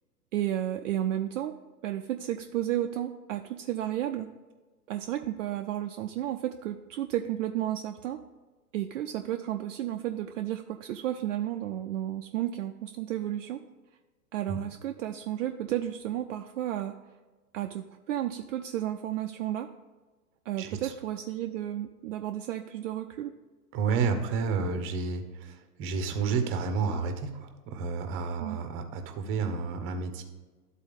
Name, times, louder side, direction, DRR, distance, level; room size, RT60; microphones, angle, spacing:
voice 1, 0.3-1.6 1.8-4.3 4.9-8.2 8.7-13.6 14.3-17.0 17.5-19.7 20.5-23.3 28.4-28.6, right 12 dB, 55° right, 5 dB, 0.5 m, -32 dB
voice 2, 20.6-20.9 23.7-30.2, right 5 dB, 25° right, 7 dB, 0.8 m, -31 dB
12.0 x 4.1 x 3.5 m, 1.3 s
hypercardioid pair, 110°, 47 cm